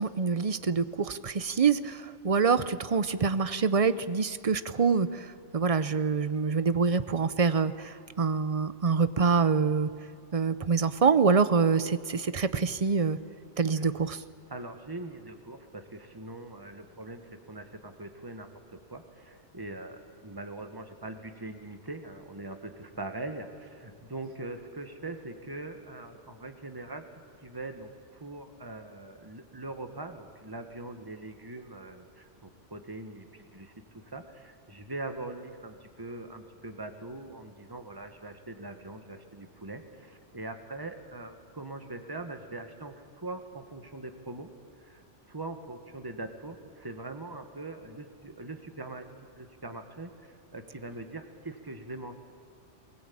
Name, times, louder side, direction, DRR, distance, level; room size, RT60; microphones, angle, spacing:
voice 1, 0.0-9.9 10.3-13.2 13.6-14.2, right 5 dB, 35° right, 14 dB, 0.7 m, -26 dB
voice 2, 14.5-27.0 27.4-44.5 44.8-52.1, right 2 dB, 20° right, 6 dB, 1.7 m, -42 dB
23.5 x 20.5 x 8.7 m, 2.4 s
omnidirectional pair, 1.2 m